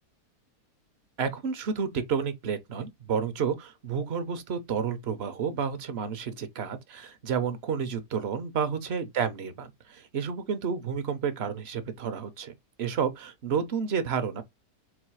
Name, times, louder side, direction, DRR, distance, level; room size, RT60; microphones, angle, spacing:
voice 1, 1.2-12.5 12.8-14.4, right 6 dB, 50° right, 0.8 m, -30 dB
4.1 x 2.7 x 4.6 m
omnidirectional pair, 1.9 m